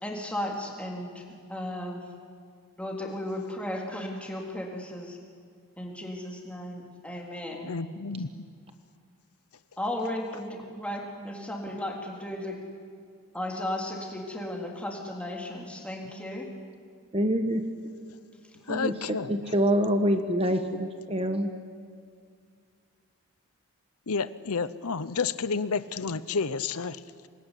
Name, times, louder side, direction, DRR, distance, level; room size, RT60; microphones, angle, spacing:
voice 1, 0.0-2.0 2.8-5.2 5.8-7.7 9.8-12.6 13.3-16.5, left 1 dB, 5° left, -1 dB, 3.4 m, -35 dB
voice 2, 7.6-8.4 18.7-19.5 24.1-27.3, left 5 dB, 85° left, 14 dB, 0.8 m, -31 dB
voice 3, 17.1-17.6 18.7-18.9 19.3-21.5, equal, 25° right, 7 dB, 1.2 m, -25 dB
25.5 x 21.0 x 10.0 m, 2.1 s
head